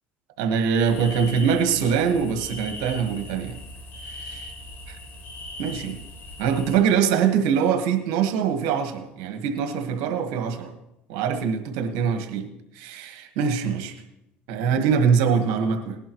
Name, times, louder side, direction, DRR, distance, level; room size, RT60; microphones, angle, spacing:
voice 1, 0.4-3.5 4.2-4.5 4.9-5.0 5.6-6.0 6.4-10.7 11.1-12.5 12.7-13.9 14.5-16.0, right 7 dB, 80° right, 6 dB, 1.4 m, -23 dB
sound 1, 0.8-6.8, left 1 dB, 55° left, 3.9 m, -39 dB
19.0 x 11.0 x 3.1 m, 0.86 s
supercardioid pair, 80°, 5 cm